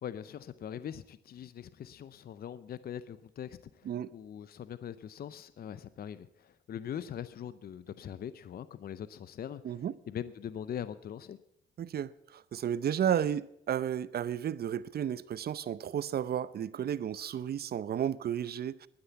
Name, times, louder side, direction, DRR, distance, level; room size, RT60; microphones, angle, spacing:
voice 1, 0.0-11.4, left 9 dB, 50° left, 0.6 m, -42 dB
voice 2, 9.6-10.0 11.8-18.9, right 9 dB, 50° right, 0.7 m, -33 dB
11.5 x 9.8 x 8.1 m
cardioid pair, 90°, 20 cm